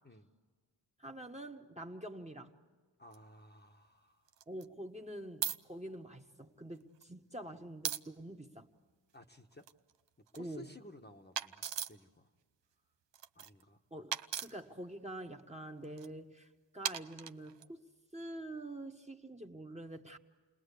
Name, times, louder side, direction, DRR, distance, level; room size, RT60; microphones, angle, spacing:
voice 1, 1.0-2.5 4.5-8.7 10.4-10.7 13.9-14.1 14.4-20.2, right 1 dB, 15° right, 3 dB, 1.4 m, -46 dB
voice 2, 3.0-4.2 9.1-9.7 10.2-12.3 13.3-13.8, left 1 dB, 25° left, 3 dB, 1.3 m, -56 dB
sound 1, 3.1-3.2 4.3-4.7 5.4-5.6 6.8-7.0 7.8-8.0 9.5-10.4 11.4-12.0 13.1-13.6 14.1-14.5 15.8-16.1 16.9-17.7, right 9 dB, 70° right, 0.8 m, -38 dB
29.0 x 20.0 x 8.4 m, 1.5 s
wide cardioid pair, 85°, 44 cm